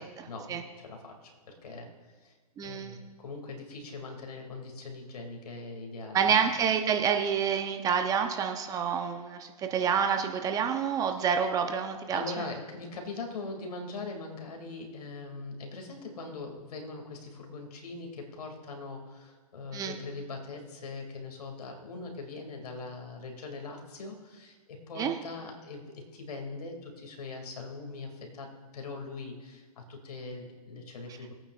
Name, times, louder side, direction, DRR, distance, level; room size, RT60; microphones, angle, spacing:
voice 1, 0.0-1.9 2.2-2.3 2.6-6.4 11.1-11.3 12.1-31.3, left 3 dB, 75° left, 2 dB, 2.5 m, -41 dB
voice 2, 2.6-3.0 6.1-12.2 19.7-20.0 25.0-25.2, right 7 dB, 20° right, 5 dB, 0.7 m, -28 dB
21.0 x 8.9 x 2.5 m, 1.4 s
hypercardioid pair, 135°, 20 cm